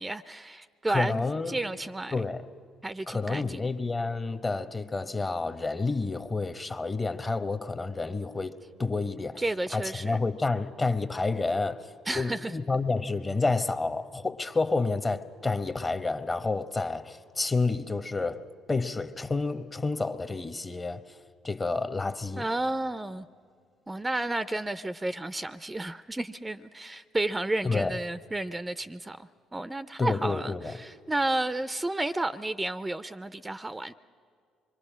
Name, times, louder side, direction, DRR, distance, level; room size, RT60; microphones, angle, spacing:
voice 1, 0.0-2.3 2.8-3.7 9.4-10.2 12.1-12.5 22.4-23.3 23.9-33.9, right 2 dB, 15° right, 0.5 m, -32 dB
voice 2, 0.9-1.6 2.1-2.5 3.1-8.5 8.8-9.4 9.7-21.2 21.4-22.5 27.6-28.0 30.0-30.8, left 3 dB, 25° left, 1.0 m, -29 dB
25.5 x 22.5 x 6.2 m
hypercardioid pair, 60°, 0 cm